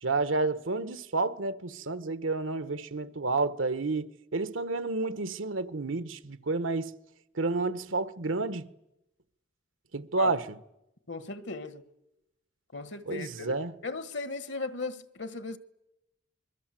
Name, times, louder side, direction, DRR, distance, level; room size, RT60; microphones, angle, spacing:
voice 1, 0.0-6.9 7.3-8.7 9.9-10.5 13.1-13.7, right 3 dB, 80° right, 1.3 m, -30 dB
voice 2, 11.1-11.8 12.7-13.5 13.8-15.6, left 3 dB, 60° left, 1.5 m, -37 dB
26.5 x 22.5 x 7.7 m
head